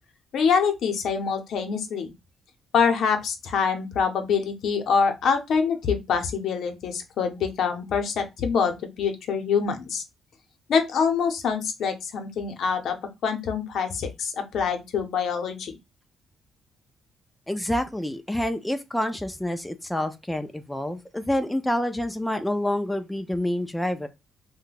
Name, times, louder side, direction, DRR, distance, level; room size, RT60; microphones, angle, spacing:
voice 1, 0.3-2.1 2.7-10.0 10.7-13.0 13.2-15.7, left 6 dB, 70° left, 0.7 m, -25 dB
voice 2, 17.5-24.1, left 1 dB, 5° left, 0.4 m, -27 dB
2.7 x 2.2 x 3.9 m
cardioid pair, 90°, 0 cm